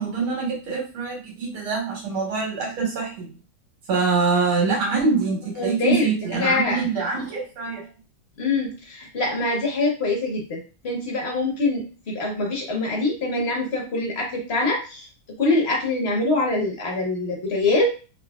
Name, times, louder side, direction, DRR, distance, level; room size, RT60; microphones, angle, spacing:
voice 1, 0.0-3.3 3.9-7.9, right 4 dB, 85° right, -2 dB, 2.2 m, -24 dB
voice 2, 5.6-6.1 6.4-6.8 8.4-15.1 15.4-17.9, left 2 dB, 50° left, -1 dB, 0.8 m, -24 dB
3.7 x 2.9 x 2.3 m, 0.33 s
omnidirectional pair, 2.2 m